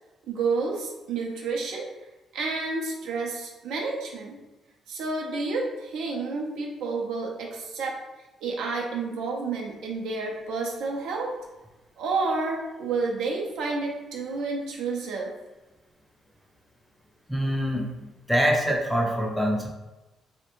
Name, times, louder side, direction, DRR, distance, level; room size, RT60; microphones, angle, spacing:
voice 1, 0.3-1.9 2.3-4.4 4.9-8.0 8.4-11.3 12.0-15.3, right 3 dB, 85° right, -1 dB, 0.5 m, -30 dB
voice 2, 17.3-17.9 18.3-19.7, equal, ahead, -1 dB, 0.5 m, -24 dB
2.5 x 2.1 x 2.9 m, 1.1 s
cardioid pair, 90°, 0 cm